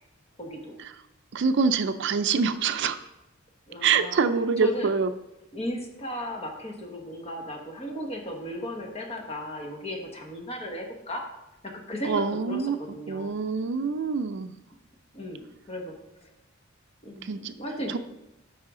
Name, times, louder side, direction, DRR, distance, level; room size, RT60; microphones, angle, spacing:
voice 1, 0.4-0.8 3.7-4.2 4.6-4.9 5.5-11.3 11.6-13.3 15.1-16.3 17.0-18.0, equal, 30° left, 2 dB, 1.4 m, -36 dB
voice 2, 1.3-3.0 3.8-5.1 12.1-12.8 13.1-14.5 17.2-17.5, right 5 dB, 60° right, 10 dB, 0.4 m, -25 dB
12.0 x 5.5 x 3.7 m, 0.91 s
head